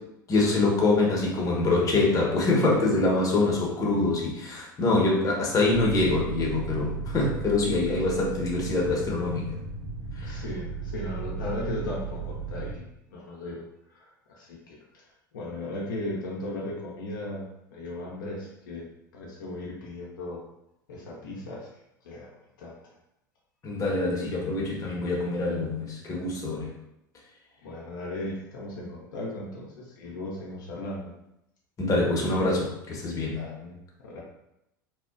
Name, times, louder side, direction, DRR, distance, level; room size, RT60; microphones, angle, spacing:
voice 1, 0.3-9.5 10.2-10.4 23.6-26.7 31.8-33.5, left 2 dB, 30° left, -2 dB, 0.8 m, -25 dB
sound 1, 5.7-12.7, right 5 dB, 80° right, 0.9 m, -35 dB
voice 2, 10.2-20.5 20.9-22.9 27.6-31.1 33.3-33.8 34.0-34.2, left 1 dB, 75° left, -4 dB, 0.5 m, -37 dB
2.7 x 2.1 x 2.4 m, 0.84 s
hypercardioid pair, 80°, 11 cm